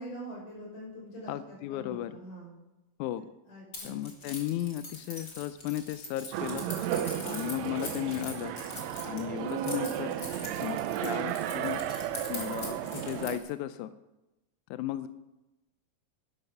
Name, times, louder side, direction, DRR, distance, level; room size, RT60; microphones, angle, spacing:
voice 1, 0.0-2.5 3.5-4.1, right 1 dB, 55° left, -4 dB, 7.3 m, -44 dB
voice 2, 1.3-2.2 3.0-3.2 3.8-6.7 7.2-8.5 9.0-10.1 10.6-11.8 12.3-13.9 14.7-15.1, left 12 dB, 80° left, 12 dB, 1.8 m, -35 dB
Keys jangling, 3.7-13.5, left 3 dB, 30° left, 2.7 m, -43 dB
sound 1, 6.3-13.4, right 10 dB, 85° right, 1.6 m, -34 dB
12.0 x 11.5 x 5.4 m, 0.98 s
omnidirectional pair, 3.9 m